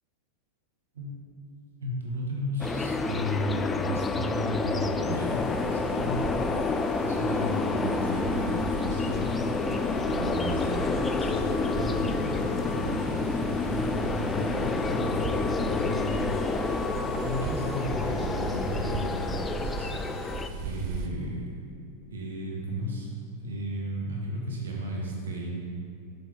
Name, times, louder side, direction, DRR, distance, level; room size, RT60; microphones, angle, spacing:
voice 1, 1.8-6.4 7.0-16.7 16.9-20.0 20.2-21.6 22.1-23.1 23.4-25.6, equal, 65° right, -2 dB, 1.4 m, -34 dB
sound 1, 2.6-20.5, left 4 dB, 15° left, 0.3 m, -29 dB
sound 2, 5.1-21.1, right 4 dB, 45° right, 0.6 m, -38 dB
6.8 x 6.8 x 3.4 m, 2.5 s
figure-of-eight pair, 90°, 0 cm